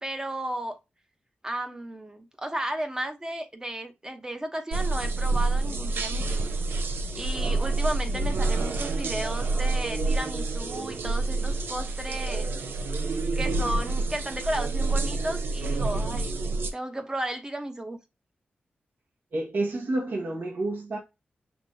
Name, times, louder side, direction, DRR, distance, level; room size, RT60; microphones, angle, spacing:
voice 1, 0.0-0.8 1.4-6.5 7.1-12.5 13.3-16.4 16.7-18.0, right 1 dB, 20° right, 0.9 m, -34 dB
sound 1, 4.7-16.7, right 3 dB, 80° right, 0.8 m, -28 dB
voice 2, 19.3-21.0, right 2 dB, 60° right, 1.4 m, -29 dB
5.9 x 3.3 x 2.7 m
wide cardioid pair, 90°, 4 cm